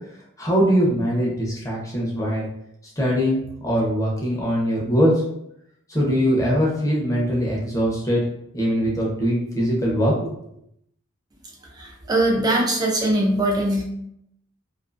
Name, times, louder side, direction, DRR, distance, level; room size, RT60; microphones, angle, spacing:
voice 1, 0.4-2.5 3.0-5.2 5.9-8.2 8.5-10.4, equal, 15° left, -5 dB, 0.7 m, -22 dB
voice 2, 11.7-13.8, right 1 dB, 20° right, -2 dB, 0.5 m, -21 dB
2.6 x 2.5 x 2.4 m, 0.76 s
head